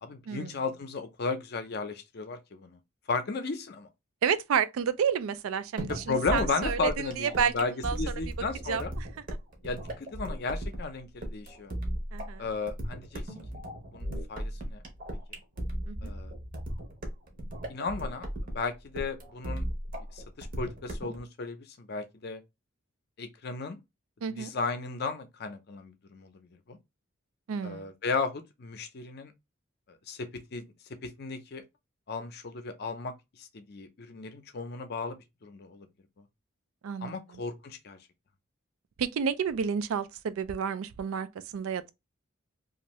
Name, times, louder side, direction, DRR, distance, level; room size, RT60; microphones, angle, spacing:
voice 1, 0.0-2.8 3.1-3.9 5.9-8.9 9.6-11.7 12.4-13.2 13.9-14.8 15.3-15.4 16.0-16.3 17.7-18.3 18.5-19.7 20.0-22.4 23.2-23.8 24.4-26.3 26.7-26.8 27.6-29.3 30.1-30.6 31.0-31.6 32.1-33.1 33.4-35.9 37.0-38.0, left 4 dB, 50° left, 0.5 m, -35 dB
voice 2, 4.2-7.5 7.8-8.2 8.7-9.1 12.1-12.4 15.9-16.1 24.2-24.5 27.5-27.8 36.8-37.4 39.0-41.3 41.5-41.9, right 7 dB, 85° right, 0.4 m, -30 dB
sound 1, 5.8-21.2, equal, 40° right, 0.8 m, -36 dB
2.6 x 2.5 x 3.0 m
head